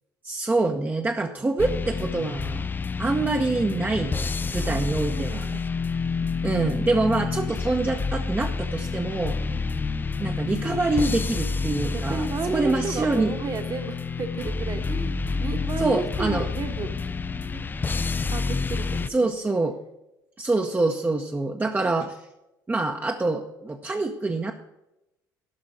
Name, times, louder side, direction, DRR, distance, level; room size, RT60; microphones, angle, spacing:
voice 1, 0.2-2.7 3.0-5.5 6.4-9.4 10.2-13.3 15.8-16.5 19.1-19.8 20.4-22.2 22.7-24.5, right 2 dB, 15° right, 3 dB, 0.8 m, -25 dB
sound 1, 1.6-19.1, left 4 dB, 20° left, 0.4 m, -29 dB
voice 2, 4.6-5.6 9.5-9.6 11.9-16.9 17.5-17.7 18.2-19.3, right 4 dB, 35° right, 6 dB, 1.3 m, -33 dB
sound 2, 6.2-17.7, left 6 dB, 55° left, 0.7 m, -41 dB
11.5 x 6.2 x 6.3 m, 0.90 s
figure-of-eight pair, 55°, 11 cm